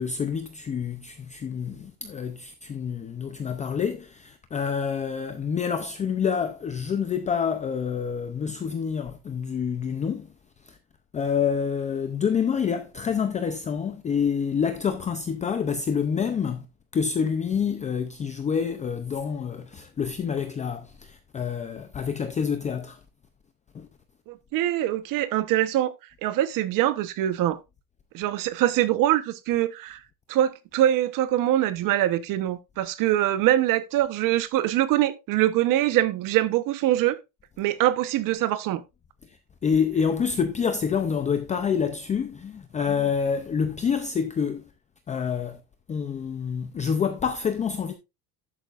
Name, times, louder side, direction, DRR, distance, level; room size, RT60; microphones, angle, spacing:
voice 1, 0.0-10.3 10.6-10.8 11.1-16.7 16.9-23.0 23.7-23.9 39.3-39.4 39.6-44.7 45.1-45.6 45.9-47.9, left 6 dB, 20° left, 0.5 m, -27 dB
voice 2, 24.3-25.9 26.2-27.6 28.1-30.0 30.3-37.2 37.6-38.8, right 13 dB, 50° right, 1.0 m, -23 dB
12.0 x 8.6 x 2.5 m
cardioid pair, 175°, 42 cm